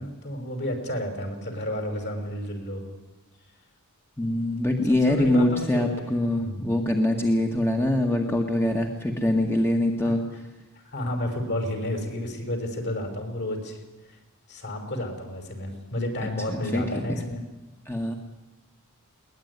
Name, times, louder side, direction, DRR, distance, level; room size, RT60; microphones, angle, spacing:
voice 1, 0.0-2.8 4.8-6.7 10.0-10.1 10.7-13.8 14.1-14.2 14.5-17.4, left 1 dB, 50° left, 6 dB, 5.7 m, -31 dB
voice 2, 4.2-10.2 16.5-17.3 17.8-18.2, left 1 dB, 10° left, 3 dB, 1.8 m, -24 dB
22.0 x 19.5 x 9.8 m, 1.1 s
head